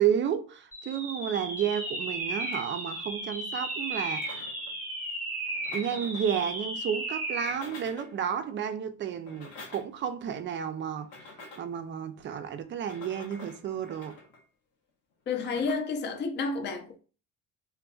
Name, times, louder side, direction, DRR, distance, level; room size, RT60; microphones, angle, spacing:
voice 1, 0.0-4.4 5.7-14.2, right 8 dB, 35° right, 0.4 m, -31 dB
sound 1, 0.7-7.6, right 1 dB, 5° right, 1.0 m, -35 dB
sound 2, 4.2-4.8 5.5-6.4 7.3-8.2 9.1-10.1 11.0-11.8 12.7-14.4 15.3-15.7, left 2 dB, 90° left, 0.8 m, -48 dB
voice 2, 15.3-17.0, left 4 dB, 35° left, 0.5 m, -30 dB
2.5 x 2.2 x 2.3 m
supercardioid pair, 90°, 32 cm